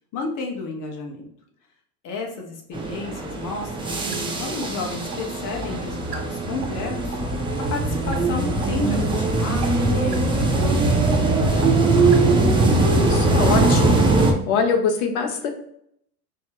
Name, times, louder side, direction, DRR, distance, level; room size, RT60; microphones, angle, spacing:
voice 1, 0.1-1.3 2.0-12.2, left 3 dB, 40° left, 2 dB, 1.2 m, -32 dB
sound 1, 2.7-14.3, right 2 dB, 10° right, 0.6 m, -21 dB
sound 2, 3.6-3.8 4.1-4.2 4.6-4.7 5.1-5.2 5.6-5.7 6.1-6.2 6.6-6.8 7.1-7.3 7.6-7.7 8.1-8.2 8.6-8.7 9.1-9.2 9.6-9.7 10.1-10.3 10.6-10.7 11.1-11.2 11.6-11.7 12.1-12.2 12.6-12.7 13.1-13.2 13.6-13.7, right 8 dB, 80° right, 1.0 m, -34 dB
voice 2, 12.7-14.0 14.5-15.5, left 5 dB, 65° left, 5 dB, 1.0 m, -24 dB
4.4 x 2.8 x 3.1 m, 0.71 s
hypercardioid pair, 95°, 46 cm